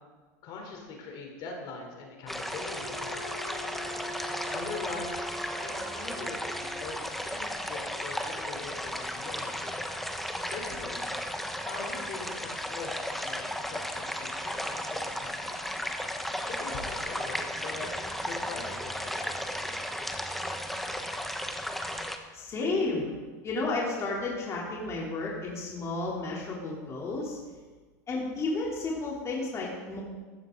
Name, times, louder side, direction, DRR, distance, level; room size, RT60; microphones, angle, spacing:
voice 1, 0.4-3.9 4.5-5.2 5.6-9.8 10.5-11.2 11.6-15.8 16.5-17.9 18.2-19.4, left 4 dB, 50° left, 1 dB, 3.8 m, -42 dB
sound 1, 2.3-22.2, equal, ahead, 1.1 m, -35 dB
Wind instrument woodwind instrument, 2.7-6.8, right 1 dB, 55° right, 4.9 m, -42 dB
voice 2, 22.3-23.1 23.4-27.4 28.1-30.0, left 3 dB, 30° left, -4 dB, 3.5 m, -32 dB
14.5 x 14.0 x 4.0 m, 1.4 s
supercardioid pair, 115°, 10 cm